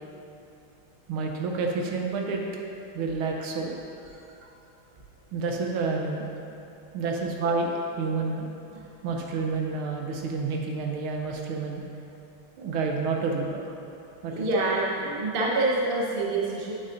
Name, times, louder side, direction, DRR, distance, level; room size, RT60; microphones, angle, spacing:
voice 1, 1.1-2.4 2.9-3.7 4.4-4.5 5.3-6.3 6.9-8.5 9.0-11.8 12.6-13.7 14.2-14.5, right 4 dB, 80° right, 1 dB, 1.6 m, -29 dB
voice 2, 14.3-16.7, right 2 dB, 35° right, -4 dB, 0.9 m, -26 dB
8.7 x 8.2 x 2.6 m, 2.9 s
omnidirectional pair, 2.3 m